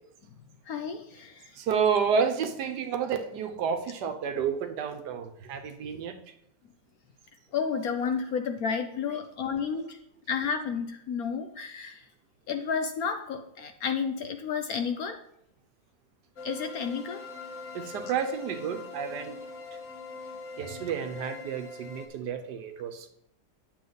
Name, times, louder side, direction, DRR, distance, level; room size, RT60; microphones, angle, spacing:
voice 1, 0.7-1.5 7.5-10.0 10.3-12.0 12.5-15.2 16.4-17.2, left 6 dB, 65° left, 1.0 m, -31 dB
voice 2, 1.6-6.2 17.7-19.4 20.6-23.1, right 6 dB, 70° right, 1.3 m, -30 dB
sound 1, 16.4-22.1, left 3 dB, 45° left, 1.5 m, -42 dB
9.3 x 7.0 x 4.0 m
omnidirectional pair, 2.0 m